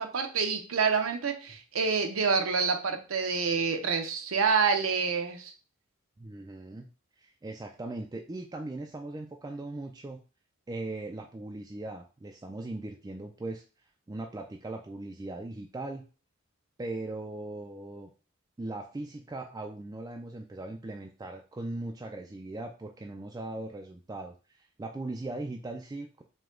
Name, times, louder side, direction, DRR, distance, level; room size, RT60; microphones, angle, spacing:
voice 1, 0.0-5.5, right 5 dB, 80° right, 5 dB, 0.7 m, -27 dB
voice 2, 6.2-6.9 7.2-10.2 10.7-13.6 14.1-16.0 16.8-18.1 18.6-26.2, right 2 dB, 20° right, 2 dB, 0.3 m, -39 dB
4.8 x 2.2 x 3.7 m, 0.35 s
head